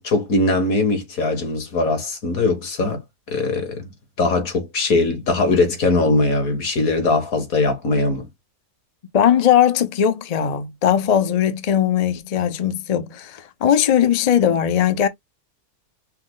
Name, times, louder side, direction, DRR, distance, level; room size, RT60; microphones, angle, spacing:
voice 1, 0.0-3.0 3.3-3.9 4.2-8.3, left 3 dB, 70° left, 1.9 m, -20 dB
voice 2, 9.1-15.1, left 9 dB, 50° left, 0.4 m, -19 dB
5.7 x 2.0 x 3.7 m
omnidirectional pair, 1.6 m